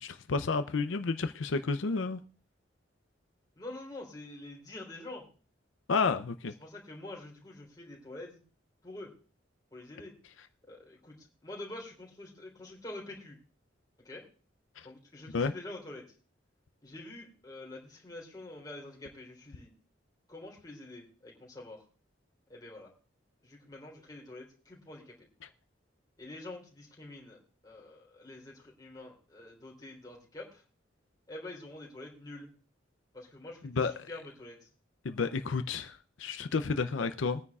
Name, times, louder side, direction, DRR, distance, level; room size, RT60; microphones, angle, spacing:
voice 1, 0.0-2.2 5.9-6.5 14.8-14.9 15.3-15.5 33.6-34.1 35.0-37.4, left 4 dB, 85° left, 0.6 m, -31 dB
voice 2, 3.6-5.2 6.6-8.4 8.8-9.1 9.7-10.1 10.6-13.4 14.0-14.2 14.8-16.0 16.8-19.7 20.3-21.8 22.5-22.9 23.4-25.3 26.2-30.6 31.3-32.5 33.1-34.7, left 2 dB, 20° left, 3.6 m, -46 dB
22.0 x 9.6 x 2.4 m
head